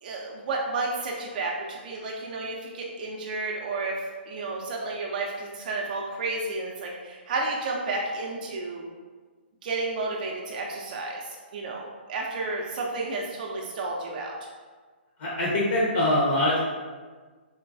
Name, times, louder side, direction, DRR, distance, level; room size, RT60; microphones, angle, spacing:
voice 1, 0.0-4.0 4.3-8.8 9.6-14.3, right 3 dB, 45° right, -1 dB, 0.4 m, -31 dB
voice 2, 15.2-16.6, left 1 dB, 50° left, -6 dB, 0.8 m, -23 dB
3.8 x 2.2 x 2.5 m, 1.4 s
hypercardioid pair, 145°, 6 cm